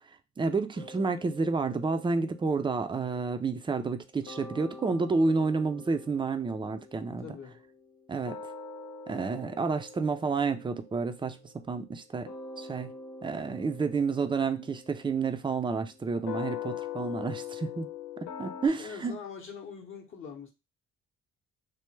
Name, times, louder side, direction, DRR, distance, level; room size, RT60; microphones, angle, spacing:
voice 1, 0.4-7.3 8.1-8.4 9.1-12.3 12.6-12.9 13.2-17.9 18.4-19.2, right 4 dB, 15° right, 0.4 m, -30 dB
sound 1, 0.8-4.0 4.3-18.7, left 7 dB, 90° left, 0.9 m, -44 dB
voice 2, 7.2-7.6 18.8-20.5, left 6 dB, 45° left, 0.8 m, -43 dB
3.3 x 2.1 x 3.1 m
cardioid pair, 90°, 30 cm